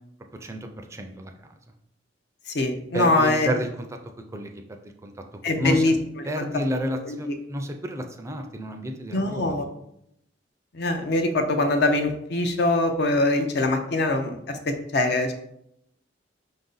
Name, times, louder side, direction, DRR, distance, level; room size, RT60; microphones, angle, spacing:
voice 1, 0.4-1.3 2.9-3.9 4.3-5.1 5.5-9.7, equal, 15° right, 5 dB, 0.4 m, -31 dB
voice 2, 2.5-3.5 5.4-5.9 6.4-6.5 7.0-7.4 9.1-9.7 10.7-15.3, left 2 dB, 60° left, 6 dB, 0.6 m, -23 dB
5.1 x 2.6 x 3.9 m, 0.77 s
head